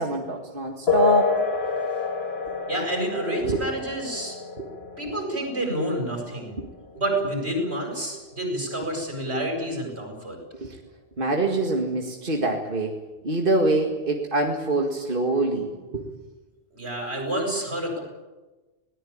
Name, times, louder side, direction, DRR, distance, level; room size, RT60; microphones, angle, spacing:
voice 1, 0.0-1.3 3.5-3.6 4.6-4.7 10.5-10.8 11.2-12.9 13.2-16.0, right 2 dB, 55° right, 1 dB, 2.3 m, -24 dB
sound 1, 0.9-8.9, left 5 dB, 80° left, 2.4 m, -30 dB
voice 2, 2.7-4.3 5.0-6.5 7.0-10.4 16.7-18.0, right 1 dB, 90° right, 1 dB, 8.1 m, -28 dB
21.5 x 19.5 x 8.8 m, 1.2 s
omnidirectional pair, 1.1 m